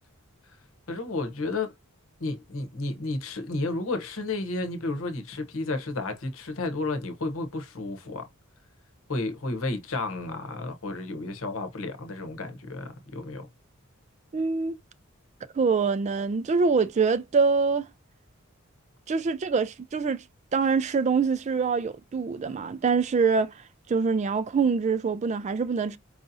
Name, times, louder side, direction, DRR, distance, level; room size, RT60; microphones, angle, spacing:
voice 1, 0.9-1.7 2.2-8.3 9.1-13.5, left 2 dB, 70° left, 0.9 m, -32 dB
voice 2, 14.3-14.8 15.5-17.9 19.1-20.2 20.5-26.0, right 5 dB, 30° right, 0.3 m, -25 dB
4.7 x 2.7 x 2.6 m
head